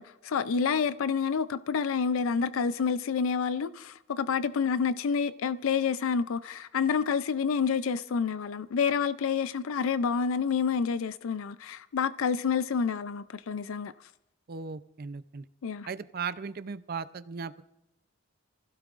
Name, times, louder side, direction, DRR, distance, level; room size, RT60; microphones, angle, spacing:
voice 1, 0.0-13.9 15.6-15.9, left 6 dB, 75° left, 0.4 m, -28 dB
voice 2, 14.5-15.4 15.9-17.6, right 5 dB, 45° right, 0.5 m, -37 dB
28.0 x 16.0 x 2.5 m
head